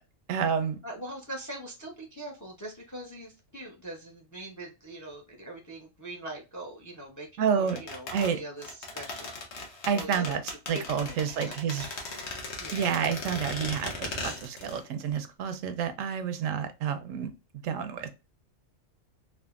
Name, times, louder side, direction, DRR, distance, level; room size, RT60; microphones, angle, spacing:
voice 1, 0.3-0.8 7.4-7.8 8.1-8.4 9.9-10.4 10.7-11.9 12.7-17.3 17.6-18.1, right 7 dB, 80° right, 9 dB, 0.9 m, -29 dB
voice 2, 0.8-9.3 9.9-10.3 10.7-11.5 11.8-12.3 12.6-12.9, right 1 dB, 20° left, 0 dB, 0.5 m, -42 dB
sound 1, 7.7-14.8 15.1-15.2, left 3 dB, 60° left, 1.0 m, -38 dB
3.5 x 2.1 x 2.3 m, 0.28 s
omnidirectional pair, 1.3 m